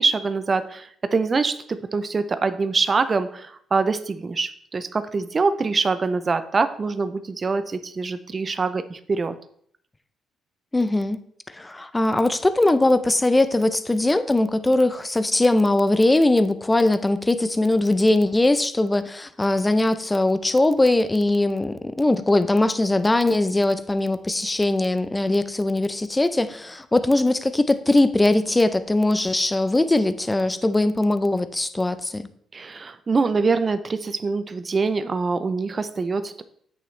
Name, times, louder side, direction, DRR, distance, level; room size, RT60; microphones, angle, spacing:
voice 1, 0.0-9.3 32.5-36.4, right 4 dB, 35° right, 11 dB, 0.5 m, -24 dB
voice 2, 10.7-11.2 11.5-32.3, left 2 dB, 15° left, 12 dB, 0.5 m, -20 dB
8.5 x 6.6 x 3.2 m, 0.63 s
cardioid pair, 90°, 0 cm